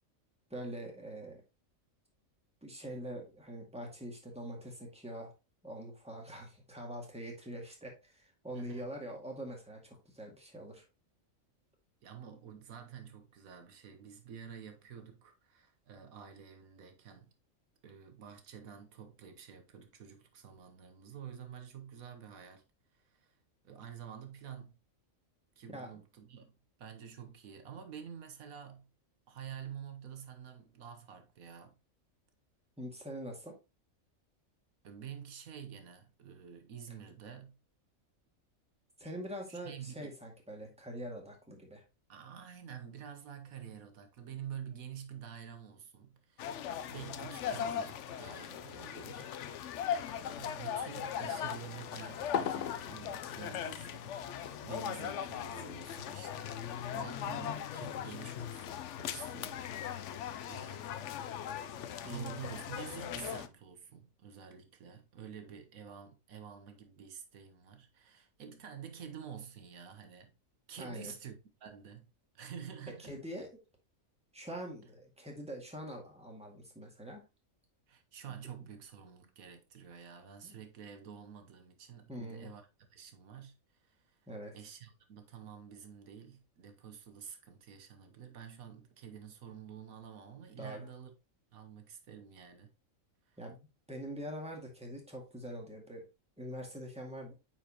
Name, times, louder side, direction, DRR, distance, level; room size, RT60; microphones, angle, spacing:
voice 1, 0.5-1.4 2.6-5.3 5.6-10.8 25.7-26.0 32.8-33.6 39.0-41.8 62.0-62.3 70.8-71.1 73.0-73.5 74.3-77.2 80.4-80.5 82.1-82.5 84.3-84.5 90.6-90.9 93.4-96.0 96.4-97.3, equal, 5° right, 1.9 m, -44 dB
voice 2, 8.5-8.9 12.0-17.3 17.8-22.6 22.9-23.4 23.6-24.7 25.6-28.9 29.3-31.7 34.8-37.6 39.5-40.1 42.1-49.6 49.9-60.9 62.0-70.3 70.7-71.3 71.6-72.1 72.3-73.2 77.9-84.2 84.5-91.1 91.5-92.7 93.3-93.4, right 8 dB, 80° right, 1.4 m, -49 dB
sound 1, 46.4-63.5, left 9 dB, 65° left, 0.9 m, -39 dB
9.1 x 4.5 x 2.9 m
omnidirectional pair, 1.4 m